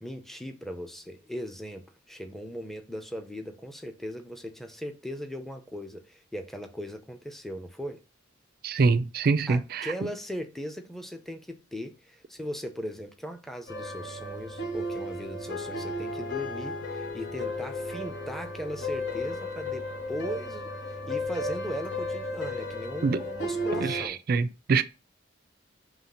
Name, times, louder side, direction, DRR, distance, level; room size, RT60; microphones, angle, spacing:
voice 1, 0.0-8.0 9.5-24.2, equal, ahead, 0.6 m, -38 dB
voice 2, 8.6-9.9 23.0-23.2 23.9-24.0 24.3-24.8, right 4 dB, 50° right, 0.4 m, -24 dB
sound 1, 13.7-24.1, left 1 dB, 75° left, 1.5 m, -34 dB
5.7 x 3.2 x 5.7 m
head